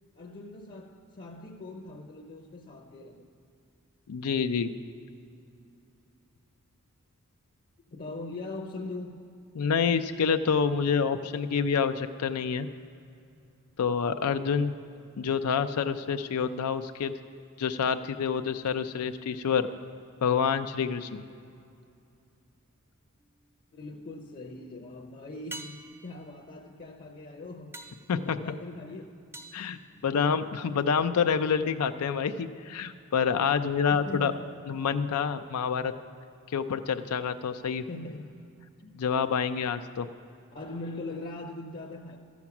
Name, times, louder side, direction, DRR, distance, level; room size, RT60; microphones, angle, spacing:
voice 1, 0.2-3.3 7.9-9.2 16.0-16.1 23.7-27.7 28.2-29.1 33.9-35.0 37.9-38.4 38.8-38.9 40.5-42.2, left 2 dB, 40° left, 3 dB, 0.7 m, -41 dB
voice 2, 4.1-4.7 9.6-12.7 13.8-14.7 15.2-17.1 17.6-19.7 20.2-21.2 28.1-28.4 29.5-34.3 34.7-35.9 36.5-37.8 38.9-40.1, left 6 dB, 80° left, 9 dB, 0.4 m, -27 dB
sound 1, 23.2-23.8 25.5-30.7 35.1-35.2, right 1 dB, 10° right, 0.4 m, -48 dB
13.0 x 7.1 x 5.9 m, 2.5 s
head